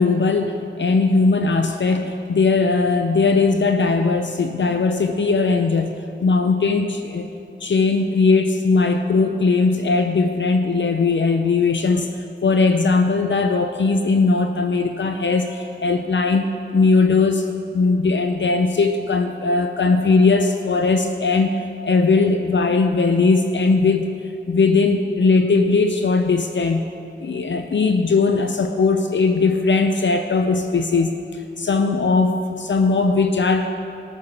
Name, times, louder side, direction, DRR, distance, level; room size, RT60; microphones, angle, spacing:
voice 1, 0.0-5.9 6.2-7.3 7.6-16.5 16.7-17.5 17.7-24.1 24.5-26.8 27.2-33.7, left 4 dB, 65° left, 6 dB, 0.6 m, -19 dB
14.0 x 6.6 x 7.1 m, 2.6 s
wide cardioid pair, 55°, 20 cm